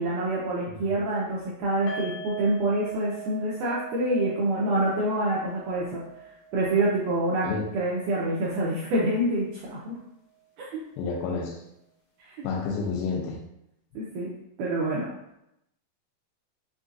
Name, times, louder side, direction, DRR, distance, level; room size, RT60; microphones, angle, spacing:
voice 1, 0.0-6.0 6.5-7.5 7.7-9.9 10.7-10.8 12.2-12.4 14.0-14.3 14.6-15.1, right 1 dB, 90° right, -5 dB, 1.8 m, -26 dB
sound 1, 1.9-9.1 9.3-9.5 9.9-10.0, right 6 dB, 70° left, 1.8 m, -42 dB
voice 2, 11.0-11.6 12.4-13.4, left 4 dB, 85° left, 0 dB, 2.6 m, -30 dB
5.9 x 2.4 x 2.7 m, 0.81 s
omnidirectional pair, 4.3 m